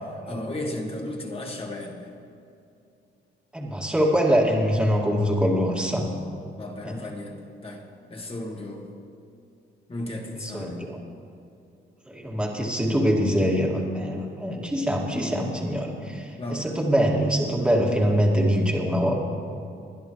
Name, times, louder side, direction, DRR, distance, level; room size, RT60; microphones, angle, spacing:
voice 1, 0.3-2.2 6.6-7.8 8.1-8.9 9.9-10.8 16.3-16.8, left 1 dB, 30° left, 1 dB, 1.9 m, -34 dB
voice 2, 3.5-6.1 6.8-7.0 10.4-11.0 12.1-19.2, equal, 5° right, -2 dB, 2.0 m, -24 dB
21.5 x 11.0 x 3.1 m, 2.5 s
cardioid pair, 90°, 20 cm